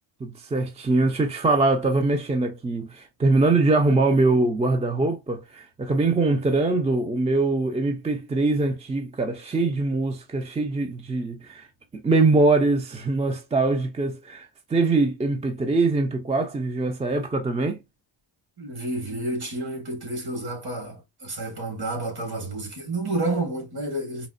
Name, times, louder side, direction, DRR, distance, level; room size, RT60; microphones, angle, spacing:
voice 1, 0.2-11.7 11.9-17.8, right 3 dB, 15° right, 0.3 m, -23 dB
voice 2, 18.6-24.3, right 2 dB, 50° right, 1.5 m, -30 dB
4.0 x 2.1 x 2.4 m
wide cardioid pair, 125°, 50 cm